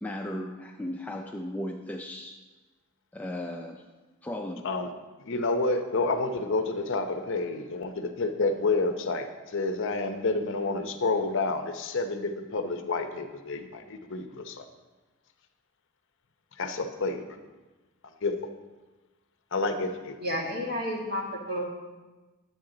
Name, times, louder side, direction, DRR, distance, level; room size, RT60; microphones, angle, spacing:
voice 1, 0.0-2.4 3.1-3.8 4.2-4.7, left 1 dB, 5° left, 1 dB, 0.4 m, -36 dB
voice 2, 5.2-14.6 16.6-17.2 18.2-18.3 19.5-20.2, left 3 dB, 60° left, 6 dB, 0.7 m, -29 dB
voice 3, 20.2-21.6, equal, 50° right, -1 dB, 1.7 m, -31 dB
10.0 x 7.9 x 3.8 m, 1.2 s
head